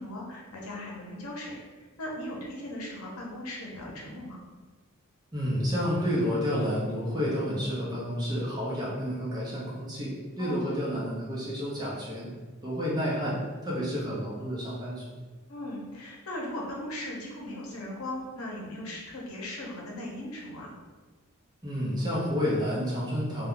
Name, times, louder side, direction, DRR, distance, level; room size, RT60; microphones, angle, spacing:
voice 1, 0.0-4.4 10.4-10.7 15.5-20.7, left 1 dB, 85° left, -2 dB, 0.7 m, -38 dB
voice 2, 5.3-12.3 12.6-13.4 13.6-15.0 21.6-23.5, equal, 20° right, -6 dB, 0.7 m, -30 dB
2.3 x 2.2 x 3.7 m, 1.4 s
head